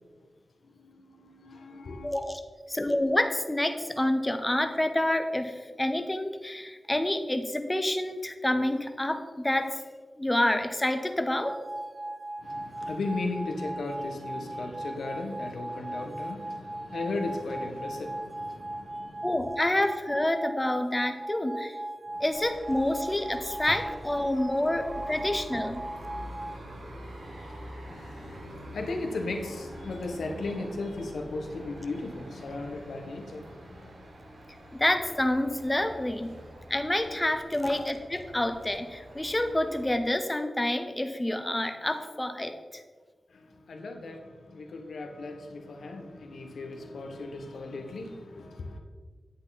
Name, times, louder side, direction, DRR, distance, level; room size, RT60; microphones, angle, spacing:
voice 1, 0.6-2.1 12.4-19.3 22.1-22.2 26.0-34.0 43.3-48.8, left 2 dB, 85° left, 4 dB, 1.3 m, -37 dB
voice 2, 2.0-2.4 2.7-9.8 10.2-11.6 19.2-21.8 22.2-25.8 34.7-36.3 36.7-42.8, left 1 dB, 15° left, 7 dB, 0.8 m, -28 dB
sound 1, 11.4-26.6, right 1 dB, 30° right, 0.4 m, -38 dB
sound 2, 22.3-40.0, equal, 80° right, 2.9 m, -46 dB
9.9 x 7.9 x 4.2 m, 1.5 s
wide cardioid pair, 85°, 0 cm